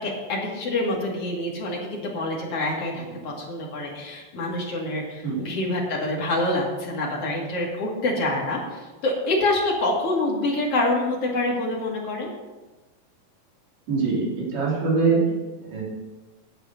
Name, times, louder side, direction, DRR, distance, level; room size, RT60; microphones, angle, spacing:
voice 1, 0.0-12.3, left 2 dB, 45° left, -2 dB, 3.0 m, -26 dB
voice 2, 13.9-15.2 15.6-15.8, right 4 dB, 45° right, -5 dB, 4.6 m, -23 dB
9.9 x 8.2 x 6.6 m, 1.2 s
omnidirectional pair, 4.4 m